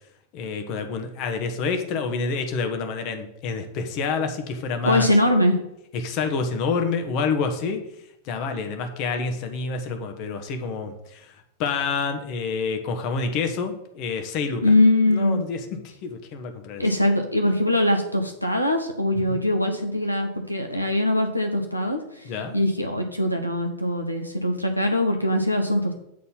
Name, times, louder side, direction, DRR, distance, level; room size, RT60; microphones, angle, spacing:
voice 1, 0.3-5.1 5.9-7.8 8.2-11.3 11.6-14.6 15.1-16.8 19.3-19.4 22.2-22.5, left 4 dB, 40° left, 6 dB, 1.0 m, -28 dB
voice 2, 4.8-5.6 14.6-15.4 16.8-25.9, left 1 dB, 90° left, 4 dB, 0.7 m, -22 dB
8.5 x 4.1 x 5.7 m, 0.81 s
figure-of-eight pair, 90°, 0 cm